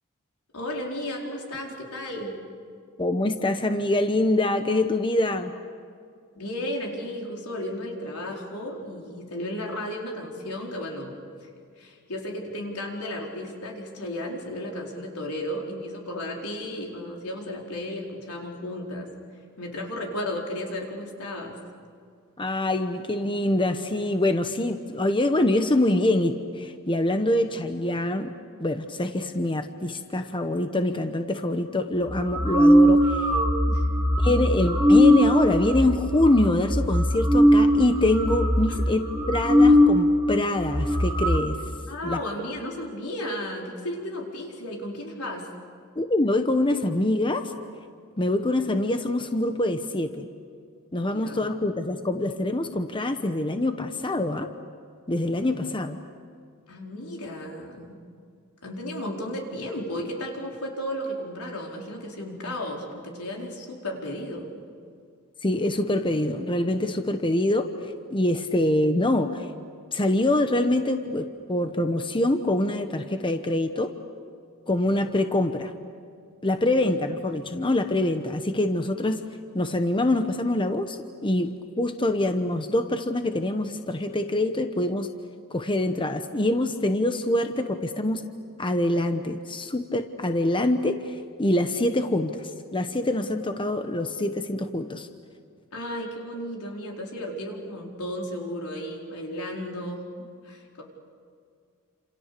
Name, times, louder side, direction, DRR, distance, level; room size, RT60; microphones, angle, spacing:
voice 1, 0.5-2.3 6.3-11.2 11.4-11.5 11.8-19.1 19.6-21.6 33.7-33.9 34.2-34.3 38.7-39.0 41.9-45.5 51.0-51.5 56.7-58.0 58.6-64.5 76.7-76.9 95.7-100.0 100.4-100.8, left 1 dB, 90° left, 0 dB, 4.5 m, -34 dB
voice 2, 3.0-5.5 22.4-28.3 28.6-33.3 34.2-41.6 42.0-42.2 45.9-47.5 48.2-50.3 50.9-54.5 55.1-56.0 65.4-69.5 69.9-73.9 74.7-75.7 76.4-79.3 79.5-85.1 85.5-88.2 88.6-95.1, left 1 dB, 25° left, 7 dB, 1.0 m, -25 dB
sound 1, 32.1-40.0 40.3-40.4 40.6-41.4, equal, 10° right, 3.1 m, -20 dB
29.0 x 27.5 x 6.8 m, 2.2 s
head